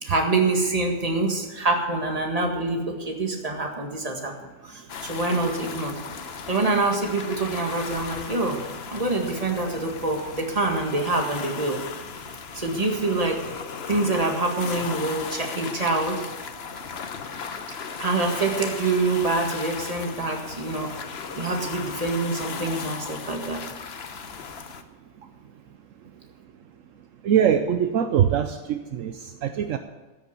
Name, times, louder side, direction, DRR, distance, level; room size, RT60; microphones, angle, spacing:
voice 1, 0.0-4.3 4.6-6.0 6.5-8.6 8.9-11.8 12.5-13.4 13.9-16.2 18.0-23.6, right 3 dB, 25° right, 2 dB, 1.9 m, -26 dB
sound 1, 4.9-24.8, left 6 dB, 55° left, 1.0 m, -36 dB
voice 2, 27.2-29.1 29.4-29.8, right 9 dB, 75° right, 8 dB, 1.0 m, -22 dB
13.5 x 6.6 x 8.3 m, 1.2 s
omnidirectional pair, 1.4 m